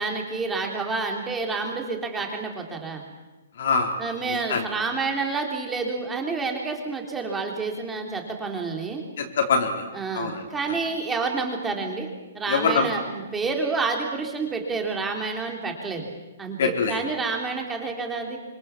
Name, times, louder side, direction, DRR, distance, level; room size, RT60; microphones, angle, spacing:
voice 1, 0.0-3.0 4.0-9.0 9.9-12.1 12.3-16.1 16.4-18.4, right 4 dB, 10° right, 2 dB, 3.6 m, -29 dB
voice 2, 3.6-3.9 4.5-4.6 9.2-9.8 10.1-10.4 12.5-12.9 16.6-17.0, left 5 dB, 55° left, 1 dB, 4.2 m, -23 dB
27.5 x 26.5 x 7.4 m, 1.1 s
hypercardioid pair, 170°, 0 cm